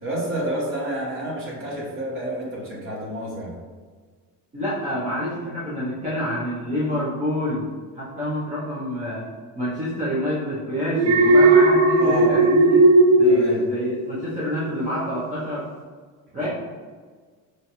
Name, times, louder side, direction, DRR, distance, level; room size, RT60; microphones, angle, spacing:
voice 1, 0.0-3.6 12.0-12.5 13.2-13.6 16.4-16.5, right 1 dB, 35° right, -5 dB, 1.1 m, -29 dB
voice 2, 4.5-7.7 7.9-9.2 9.5-12.8 13.2-15.6 16.3-16.5, equal, 20° right, -9 dB, 0.5 m, -27 dB
Alarm, 10.9-14.3 14.6-15.0, right 2 dB, 85° right, 0.9 m, -16 dB
5.0 x 2.2 x 2.8 m, 1.5 s
cardioid pair, 175°, 36 cm